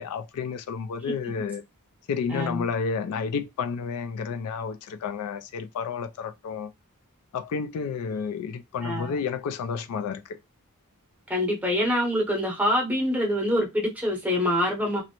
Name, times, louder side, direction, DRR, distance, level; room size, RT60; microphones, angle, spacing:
voice 1, 0.0-1.6 2.1-6.7 7.3-10.4, left 5 dB, 85° left, 0.3 m, -31 dB
voice 2, 2.3-2.7 8.8-9.1 11.3-15.0, left 1 dB, 5° right, 0.8 m, -25 dB
2.5 x 2.0 x 2.8 m
head